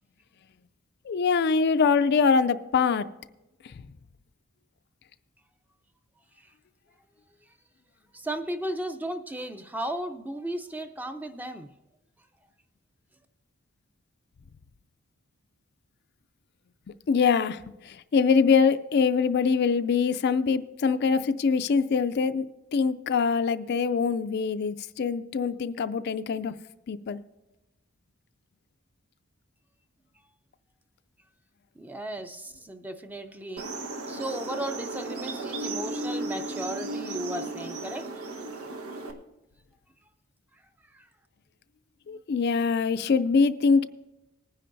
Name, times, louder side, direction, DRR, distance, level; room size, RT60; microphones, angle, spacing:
voice 1, 1.1-3.1 3.6-3.8 17.1-22.4 22.7-26.5 26.9-27.2 42.1-43.9, left 5 dB, 50° left, 12 dB, 0.3 m, -24 dB
voice 2, 8.1-11.7 31.8-33.7 34.1-38.1 40.9-41.1, right 1 dB, 10° right, 8 dB, 0.5 m, -35 dB
sound 1, 33.6-39.1, right 2 dB, 90° right, 1.2 m, -35 dB
19.5 x 10.0 x 2.6 m, 0.97 s
head